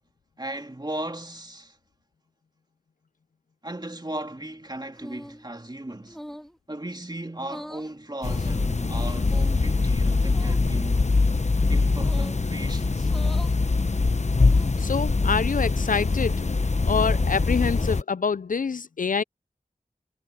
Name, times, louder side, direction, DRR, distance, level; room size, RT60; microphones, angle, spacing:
voice 1, 0.4-1.8 3.6-6.2 6.7-11.2 11.7-13.1, right 1 dB, 30° right, 2.7 m, -36 dB
sound 1, 5.0-5.4 6.1-6.6 7.4-7.9 8.9-9.4 10.2-10.6 12.0-12.4 13.0-13.6 14.2-14.8, equal, ahead, 1.9 m, -42 dB
sound 2, 8.2-18.0, left 3 dB, 50° left, 0.8 m, -23 dB
voice 2, 14.8-16.4 16.8-19.2, left 5 dB, 65° left, 0.4 m, -26 dB
wide cardioid pair, 55°, 15 cm